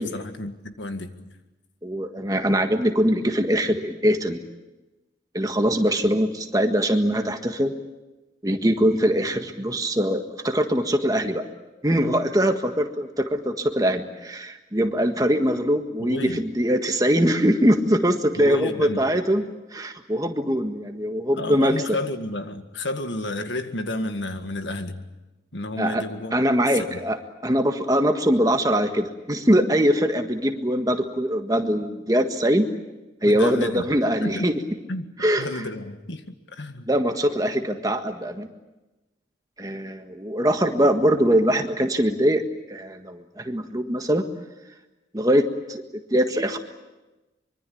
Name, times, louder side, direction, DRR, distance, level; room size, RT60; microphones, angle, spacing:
voice 1, 0.0-1.3 16.0-16.4 18.4-19.0 21.3-25.1 25.5-26.4 26.9-27.0 33.2-33.9 34.2-34.5 34.9-36.9, left 1 dB, 85° left, 8 dB, 1.9 m, -31 dB
voice 2, 1.8-4.4 5.3-7.7 8.4-11.4 11.8-22.0 25.8-26.0 26.3-27.2 27.4-32.7 33.2-34.6 35.2-35.6 36.9-38.5 39.6-42.4 42.7-44.2 45.1-45.4 45.7-45.8 46.1-46.6, equal, 20° right, 6 dB, 1.6 m, -22 dB
24.5 x 23.5 x 8.6 m, 1.1 s
head